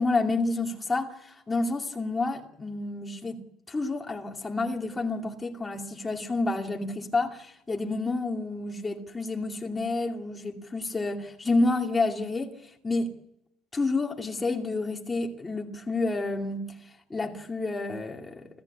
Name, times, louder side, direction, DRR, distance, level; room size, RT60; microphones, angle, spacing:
voice 1, 0.0-3.4 3.7-12.5 12.8-13.1 13.7-16.7 17.1-18.5, left 3 dB, 10° left, 2.4 m, -29 dB
26.5 x 14.5 x 8.4 m
cardioid pair, 165°, 0 cm